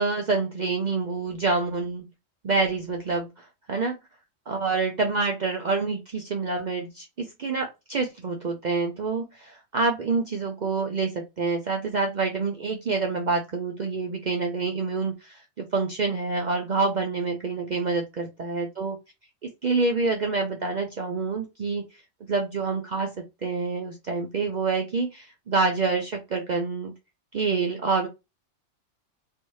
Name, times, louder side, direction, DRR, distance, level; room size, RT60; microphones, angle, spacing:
voice 1, 0.0-2.1 2.4-4.0 4.5-19.0 19.6-21.8 22.3-23.1 23.4-26.9 27.3-28.1, right 4 dB, 60° right, 3 dB, 0.4 m, -27 dB
3.3 x 2.6 x 3.0 m, 0.24 s
omnidirectional pair, 1.3 m